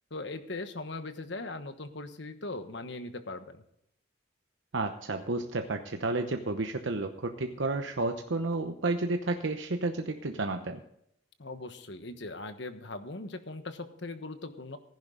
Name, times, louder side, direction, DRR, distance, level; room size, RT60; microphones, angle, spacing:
voice 1, 0.1-3.6 11.4-14.8, left 2 dB, 60° left, 9 dB, 1.3 m, -39 dB
voice 2, 4.7-10.8, right 2 dB, 70° right, 5 dB, 0.9 m, -31 dB
15.5 x 10.5 x 3.9 m, 0.72 s
head